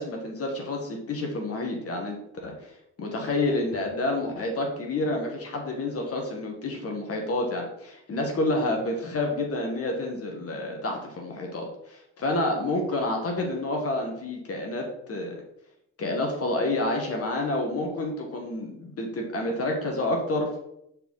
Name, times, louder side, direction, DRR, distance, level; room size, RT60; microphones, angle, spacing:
voice 1, 0.0-2.2 2.4-15.4 16.0-20.6, left 2 dB, 50° left, 1 dB, 1.7 m, -29 dB
6.4 x 4.3 x 4.8 m, 0.78 s
cardioid pair, 90°, 30 cm